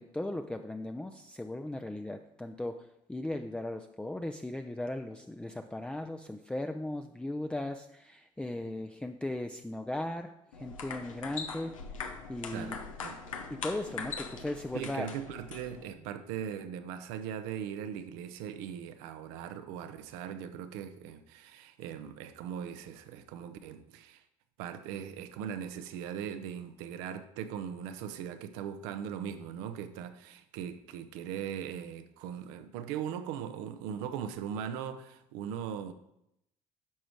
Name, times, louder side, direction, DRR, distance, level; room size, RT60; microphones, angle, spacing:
voice 1, 0.0-12.8 13.5-15.1, left 1 dB, 5° left, 0.5 m, -37 dB
sound 1, 10.5-15.9, left 5 dB, 85° left, 0.8 m, -41 dB
voice 2, 12.5-13.2 14.7-24.2 24.6-35.9, right 8 dB, 70° right, 0.8 m, -39 dB
10.0 x 6.2 x 4.6 m
hypercardioid pair, 55°, 16 cm